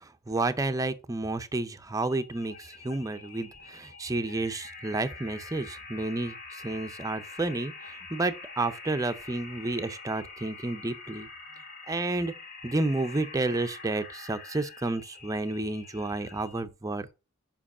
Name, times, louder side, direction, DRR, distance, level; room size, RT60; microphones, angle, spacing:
voice 1, 0.3-11.3 11.9-12.3 12.6-17.1, right 2 dB, 15° right, 0.5 m, -31 dB
sound 1, 2.0-16.6, left 4 dB, 45° left, 1.5 m, -45 dB
5.3 x 4.9 x 5.4 m
head